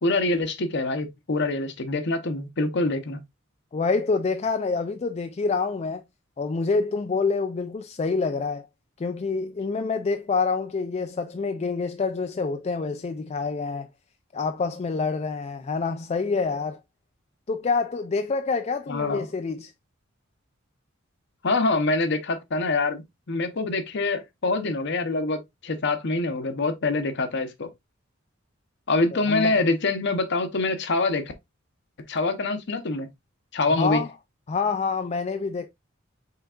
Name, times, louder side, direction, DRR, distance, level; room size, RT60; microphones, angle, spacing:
voice 1, 0.0-3.2 18.9-19.3 21.4-27.7 28.9-31.2 32.1-33.1 33.5-34.0, left 3 dB, 60° left, 0.8 m, -25 dB
voice 2, 3.7-6.0 6.4-8.7 9.0-13.9 14.3-16.8 17.5-19.7 29.1-29.6 33.7-34.1 34.5-35.7, left 4 dB, 30° left, 0.4 m, -27 dB
5.7 x 3.9 x 2.4 m
head